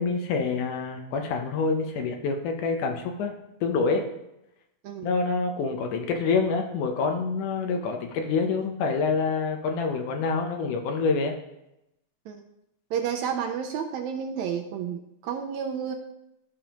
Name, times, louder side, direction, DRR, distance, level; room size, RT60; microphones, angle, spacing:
voice 1, 0.0-3.3 3.6-4.1 5.0-11.4, left 4 dB, 80° left, 3 dB, 2.3 m, -26 dB
voice 2, 12.9-16.0, right 7 dB, 75° right, 4 dB, 1.8 m, -31 dB
13.5 x 5.3 x 3.0 m, 0.86 s
omnidirectional pair, 3.6 m